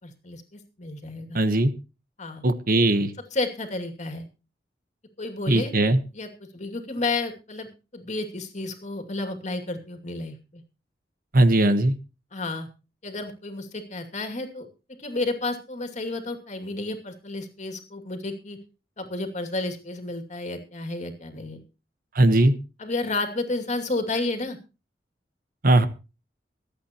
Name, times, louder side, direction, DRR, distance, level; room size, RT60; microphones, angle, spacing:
voice 1, 0.0-1.4 2.2-2.4 3.3-4.3 5.2-5.7 6.1-10.6 12.3-12.7 13.0-14.7 15.0-18.6 19.0-21.6 22.8-24.6, left 2 dB, 45° left, 5 dB, 2.6 m, -31 dB
voice 2, 1.3-1.7 2.4-3.1 5.5-6.0 11.3-11.9 22.1-22.5 25.6-25.9, right 1 dB, 55° right, 12 dB, 1.2 m, -19 dB
25.0 x 8.6 x 3.0 m, 0.31 s
head